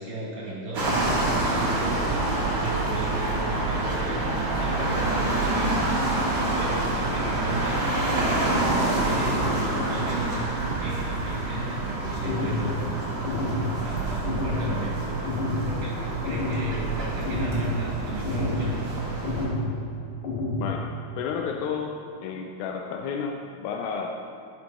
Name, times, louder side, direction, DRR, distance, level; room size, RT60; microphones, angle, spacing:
voice 1, 0.0-4.3 4.6-7.9 8.3-10.4 10.8-12.8 13.3-15.3 15.7-18.8, right 2 dB, 55° right, -7 dB, 4.1 m, -35 dB
sound 1, 0.7-19.5, right 1 dB, 35° right, 1.9 m, -27 dB
sound 2, 2.1-8.4 8.8-8.9 10.5-12.9 13.9-16.7, right 7 dB, 90° right, 2.0 m, -37 dB
sound 3, 12.2-12.7 13.2-13.6 14.2-14.6 15.2-15.6 16.2-16.6 17.2-17.6 18.2-18.7 19.2-19.6 20.2-20.6, left 2 dB, 60° left, 2.1 m, -29 dB
voice 2, 20.6-20.9 21.2-21.9 22.2-24.1, left 6 dB, 80° left, 1 dB, 2.2 m, -31 dB
11.5 x 10.5 x 3.0 m, 2.6 s
omnidirectional pair, 4.6 m